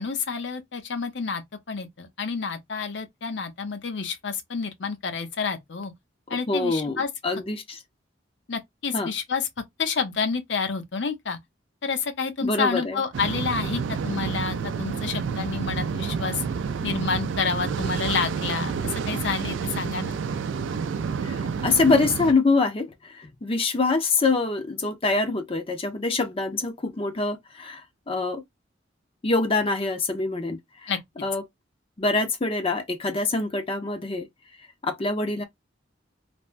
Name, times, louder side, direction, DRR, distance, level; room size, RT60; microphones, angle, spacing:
voice 1, 0.0-1.4 1.7-5.9 6.3-7.1 8.5-9.5 9.8-11.4 11.8-16.4 16.8-20.1 30.9-31.0, left 5 dB, 70° left, 0.8 m, -29 dB
voice 2, 6.5-7.8 8.9-9.1 12.4-13.0 21.2-27.8 28.1-28.4 29.2-30.9 31.2-31.4 32.0-34.3 34.8-35.4, left 3 dB, 30° left, 0.6 m, -25 dB
sound 1, 13.1-22.3, right 5 dB, 85° right, 0.4 m, -29 dB
3.3 x 2.1 x 2.4 m
head